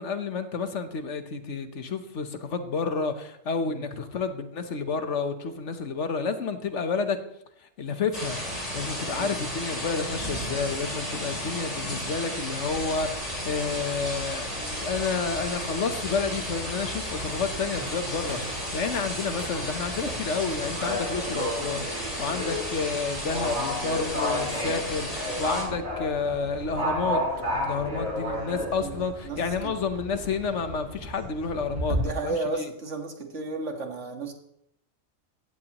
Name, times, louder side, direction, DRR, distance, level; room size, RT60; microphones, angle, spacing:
voice 1, 0.0-7.2 7.8-8.4 8.7-27.2 27.5-32.7, left 5 dB, 65° left, 9 dB, 1.3 m, -30 dB
sound 1, 8.1-25.6, equal, 25° left, 3.6 m, -34 dB
Livestock farm animals working animals, 12.6-32.0, left 1 dB, 85° right, 7.1 m, -34 dB
voice 2, 28.8-29.7 31.9-34.3, right 3 dB, 60° right, 4 dB, 2.0 m, -34 dB
17.5 x 15.0 x 3.0 m, 0.75 s
omnidirectional pair, 1.4 m